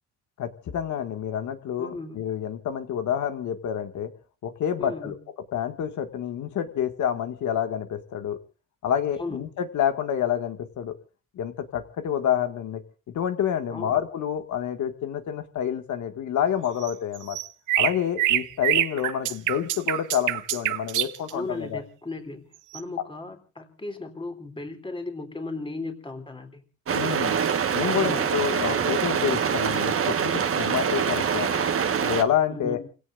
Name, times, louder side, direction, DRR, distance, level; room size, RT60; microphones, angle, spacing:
voice 1, 0.4-4.1 4.4-5.2 5.5-8.4 8.8-10.9 11.3-12.8 13.1-17.4 17.8-21.8 26.9-27.4 27.7-31.6 32.0-32.8, left 9 dB, 75° left, 7 dB, 2.1 m, -28 dB
voice 2, 1.8-2.2 4.8-5.2 9.2-9.4 13.7-13.9 21.3-26.6 28.0-28.3 32.5-32.9, left 3 dB, 15° left, 4 dB, 3.3 m, -36 dB
sound 1, 16.8-21.3 22.7-22.8, right 14 dB, 85° right, 0.9 m, -25 dB
sound 2, 26.9-32.2, right 7 dB, 50° right, 1.5 m, -25 dB
29.5 x 17.0 x 2.6 m, 0.35 s
cardioid pair, 90°, 30 cm